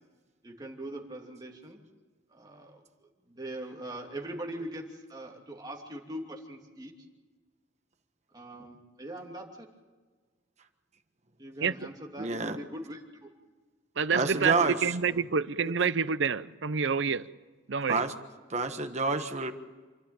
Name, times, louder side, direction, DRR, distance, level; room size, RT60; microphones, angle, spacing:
voice 1, 0.4-1.8 2.3-6.9 8.3-9.7 11.4-13.3 14.3-14.7 15.0-15.2, right 1 dB, 20° right, 2.8 m, -42 dB
voice 2, 12.2-12.6 14.1-14.8 17.9-18.1 18.5-19.5, right 3 dB, 35° right, 1.4 m, -28 dB
voice 3, 14.0-14.5 14.8-17.3 17.7-18.0, right 5 dB, 70° right, 0.7 m, -27 dB
28.0 x 12.5 x 9.0 m
head